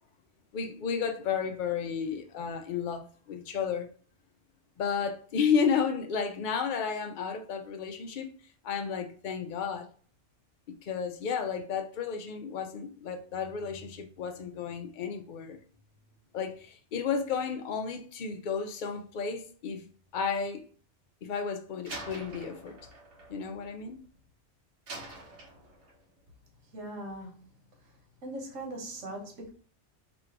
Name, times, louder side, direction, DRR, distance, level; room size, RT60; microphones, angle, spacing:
voice 1, 0.5-3.9 4.8-8.3 8.6-9.9 10.7-15.6 16.3-19.9 20.1-20.7 21.2-22.8 23.3-24.0, left 6 dB, 55° left, 0.6 m, -32 dB
Slam, 21.9-24.3 24.9-26.1, right 2 dB, 75° right, 1.3 m, -45 dB
voice 2, 26.7-27.3 28.2-29.5, right 1 dB, 90° right, 1.5 m, -39 dB
3.0 x 2.6 x 4.4 m
omnidirectional pair, 1.3 m